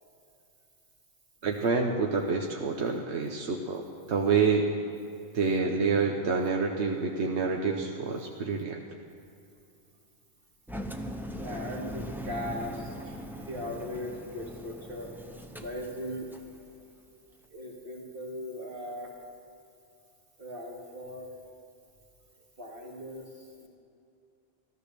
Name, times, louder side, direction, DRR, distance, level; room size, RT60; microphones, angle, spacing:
voice 1, 1.4-4.6 5.3-8.8, right 4 dB, 85° right, 1 dB, 1.3 m, -27 dB
Engine, 10.7-16.5, equal, ahead, 0.7 m, -40 dB
voice 2, 11.4-15.1 15.5-16.3 17.5-19.1 20.4-21.3 22.6-23.3 23.6-23.7, left 1 dB, 55° right, -1 dB, 2.4 m, -38 dB
14.0 x 13.5 x 6.7 m, 2.6 s
omnidirectional pair, 1.1 m